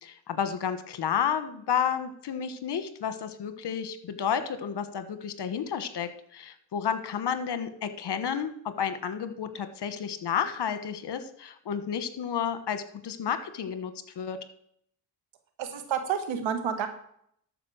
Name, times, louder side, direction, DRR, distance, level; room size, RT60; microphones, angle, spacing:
voice 1, 0.0-8.5 8.8-14.4, left 8 dB, 60° left, 11 dB, 1.4 m, -31 dB
voice 2, 15.6-16.9, right 8 dB, 85° right, 7 dB, 1.7 m, -29 dB
13.0 x 5.2 x 6.4 m, 0.66 s
cardioid pair, 75°, 45 cm